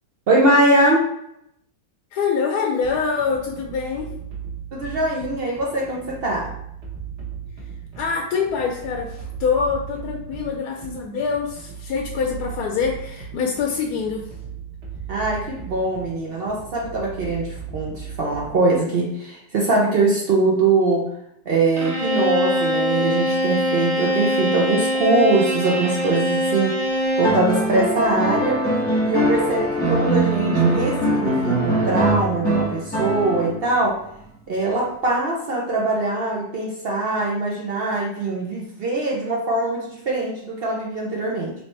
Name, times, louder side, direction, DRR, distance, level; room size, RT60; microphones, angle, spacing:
voice 1, 0.3-1.1 4.7-6.5 15.1-21.1 21.5-26.8 27.2-28.6 29.0-34.0 34.5-41.5, right 2 dB, 80° right, -2 dB, 0.5 m, -22 dB
voice 2, 2.1-4.1 8.0-14.3, left 5 dB, 70° left, 0 dB, 1.0 m, -25 dB
sound 1, 2.8-18.7, right 7 dB, 45° right, 1.1 m, -37 dB
Bowed string instrument, 21.8-27.4, equal, 25° right, 0.8 m, -23 dB
sound 2, 27.2-33.7 35.1-35.2, right 1 dB, 5° left, 0.9 m, -22 dB
3.3 x 2.8 x 4.2 m, 0.77 s
omnidirectional pair, 1.9 m